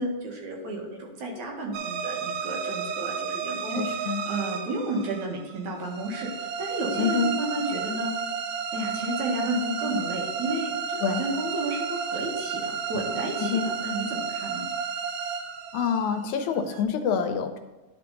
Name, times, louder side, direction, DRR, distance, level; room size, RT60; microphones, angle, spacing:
voice 1, 0.0-8.1 8.7-14.6, right 1 dB, 70° right, -1 dB, 3.0 m, -32 dB
sound 1, 1.7-16.8, right 6 dB, 90° right, 1.3 m, -32 dB
voice 2, 3.7-4.2 7.0-7.3 11.0-11.3 13.4-13.7 15.7-17.6, left 6 dB, 80° left, 7 dB, 2.0 m, -26 dB
11.5 x 4.8 x 3.9 m, 1.2 s
omnidirectional pair, 3.5 m